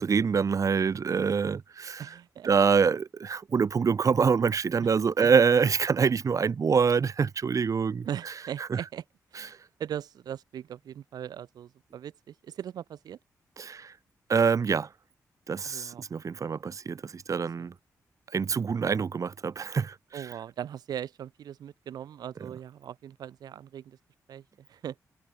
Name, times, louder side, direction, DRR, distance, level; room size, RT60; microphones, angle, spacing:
voice 1, 0.0-2.0 2.4-8.3 8.6-8.8 9.3-9.5 13.6-13.9 14.3-14.9 15.5-17.7 18.3-20.3, right 6 dB, 55° right, 3.3 m, -25 dB
voice 2, 2.0-2.5 4.8-4.9 5.2-5.3 8.0-9.0 9.3-13.2 15.6-16.1 20.1-24.0 24.3-25.0, right 10 dB, 85° right, 3.5 m, -39 dB
cardioid pair, 70°, 7 cm